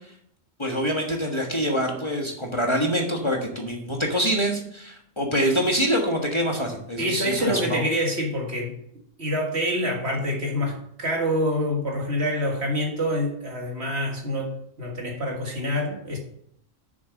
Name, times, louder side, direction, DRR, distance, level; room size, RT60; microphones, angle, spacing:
voice 1, 0.6-7.8, equal, 20° left, 1 dB, 1.4 m, -25 dB
voice 2, 7.0-8.8 9.2-16.2, equal, 55° right, 1 dB, 2.0 m, -26 dB
7.0 x 6.9 x 6.3 m, 0.68 s
omnidirectional pair, 1.3 m